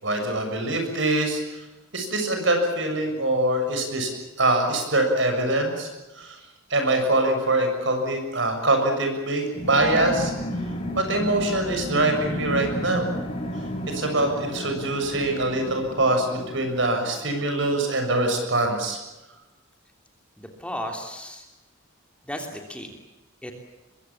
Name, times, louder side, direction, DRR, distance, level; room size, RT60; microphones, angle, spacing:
voice 1, 0.0-1.6 1.9-4.1 4.4-5.9 6.2-6.4 6.7-10.3 11.0-13.1 13.9-19.0, right 2 dB, 60° right, 5 dB, 7.0 m, -24 dB
sound 1, 9.5-17.7, equal, 30° left, 5.8 m, -33 dB
voice 2, 20.4-21.5 22.2-22.9 23.4-23.5, equal, 5° left, 3 dB, 3.1 m, -34 dB
24.5 x 22.5 x 7.3 m, 1.1 s
head